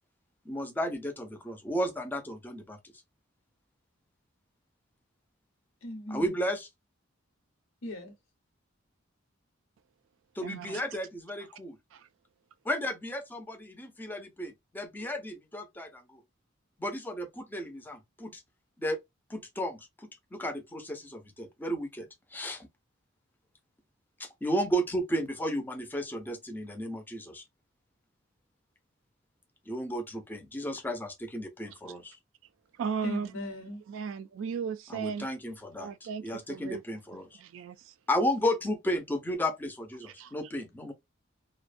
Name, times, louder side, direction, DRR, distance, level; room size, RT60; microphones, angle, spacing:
voice 1, 0.4-2.9 6.1-6.7 10.3-11.8 12.6-16.2 16.8-18.4 18.8-19.0 19.3-22.7 24.2-27.4 29.7-32.2 34.9-35.9 36.2-37.4 38.1-40.9, equal, 10° left, 0.5 m, -33 dB
voice 2, 5.8-6.3 7.8-8.1 33.0-33.8, left 1 dB, 90° left, 0.9 m, -38 dB
voice 3, 10.4-10.8 11.9-12.1 32.7-33.3 33.9-35.3 35.8-36.8 37.4-37.9 40.0-40.3, right 6 dB, 70° right, 0.3 m, -36 dB
2.4 x 2.1 x 2.4 m
head